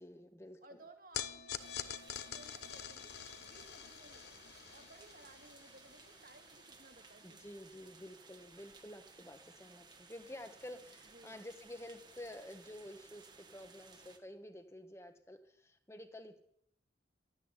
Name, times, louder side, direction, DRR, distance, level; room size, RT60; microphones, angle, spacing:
voice 1, 0.0-0.8 7.2-16.4, left 1 dB, 15° left, 7 dB, 1.3 m, -51 dB
voice 2, 0.6-7.5 11.0-11.4, right 2 dB, 50° right, 5 dB, 2.1 m, -60 dB
sound 1, 1.1-7.5, left 9 dB, 65° left, 0.9 m, -46 dB
sound 2, 1.5-14.2, right 4 dB, 25° right, 1.5 m, -59 dB
13.0 x 10.0 x 9.9 m, 0.71 s
head